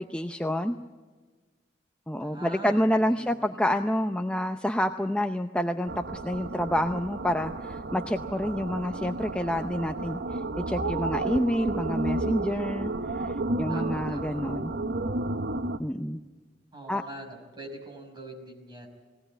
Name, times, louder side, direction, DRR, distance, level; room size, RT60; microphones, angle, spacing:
voice 1, 0.1-0.8 2.1-14.7 15.8-16.2 16.9-17.0, equal, 5° left, 6 dB, 0.6 m, -28 dB
voice 2, 2.2-2.8 3.1-3.6 13.7-14.4 16.7-18.9, right 1 dB, 25° right, 1 dB, 5.7 m, -43 dB
sound 1, 5.9-15.8, right 2 dB, 65° right, 0.8 m, -32 dB
21.0 x 17.5 x 9.0 m, 1.4 s
head